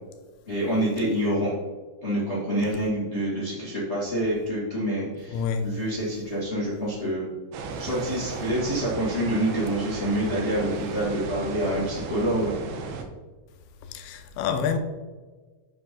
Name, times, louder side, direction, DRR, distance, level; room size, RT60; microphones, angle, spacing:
voice 1, 0.5-1.5 2.0-7.3 7.8-12.5, right 1 dB, 55° left, 0.7 m, -27 dB
voice 2, 5.3-5.7 13.8-14.8, left 6 dB, 80° left, 3.0 m, -28 dB
sound 1, 7.5-13.0, right 4 dB, 85° right, 3.2 m, -35 dB
9.8 x 6.4 x 3.8 m
omnidirectional pair, 5.4 m